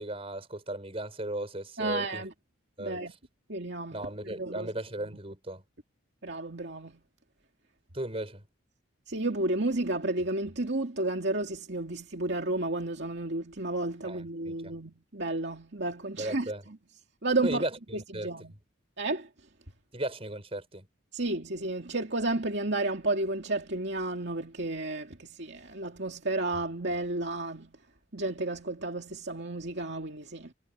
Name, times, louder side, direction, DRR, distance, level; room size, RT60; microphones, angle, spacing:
voice 1, 0.0-2.2 2.8-3.0 3.9-5.6 7.9-8.4 14.0-14.7 16.2-16.6 17.4-18.3 19.9-20.9, right 1 dB, 30° right, 6.0 m, -36 dB
voice 2, 1.8-2.3 2.8-3.1 3.5-4.7 6.2-7.0 9.1-16.8 17.2-17.6 17.9-18.5 19.0-19.3 21.1-27.8 28.1-30.5, right 2 dB, 55° right, 2.6 m, -32 dB
head